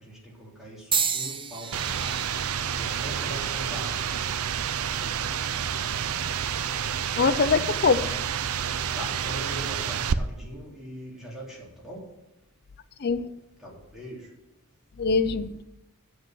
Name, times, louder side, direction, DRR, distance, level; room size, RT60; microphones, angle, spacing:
voice 1, 0.0-2.0 2.7-4.1 8.9-12.1 13.6-14.3, right 1 dB, ahead, 3.4 m, -41 dB
sound 1, 0.9-5.0 5.8-6.2 7.1-7.3, right 7 dB, 25° right, 0.6 m, -33 dB
sound 2, 1.7-10.1, right 8 dB, 75° right, 0.5 m, -29 dB
voice 2, 7.2-8.2 13.0-13.3 15.0-15.6, left 4 dB, 50° left, 0.5 m, -23 dB
8.0 x 7.6 x 8.1 m
head